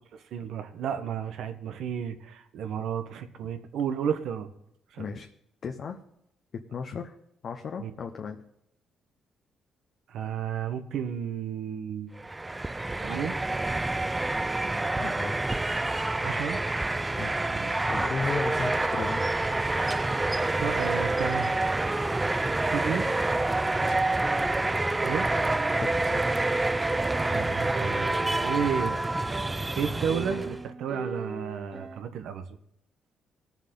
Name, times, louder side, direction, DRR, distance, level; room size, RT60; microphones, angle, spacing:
voice 1, 0.1-4.5 4.9-5.1 7.8-7.9 10.1-12.1 13.0-13.3 16.2-16.6 17.5-17.7 20.6-21.6 22.6-23.1 25.0-25.3 27.3-29.0 29.8-32.4, right 8 dB, 75° right, 8 dB, 1.1 m, -32 dB
voice 2, 5.0-5.3 5.6-6.0 6.5-7.2 7.4-8.4 15.0-15.4 17.2-17.3 17.9-19.2 23.8-24.1 25.8-26.3, left 5 dB, 55° left, 4 dB, 0.9 m, -35 dB
sound 1, 12.2-30.6, right 2 dB, 15° right, 0.4 m, -27 dB
sound 2, 24.2-32.0, right 4 dB, 35° right, 0.8 m, -41 dB
19.0 x 7.2 x 3.8 m, 0.76 s
cardioid pair, 90°, 0 cm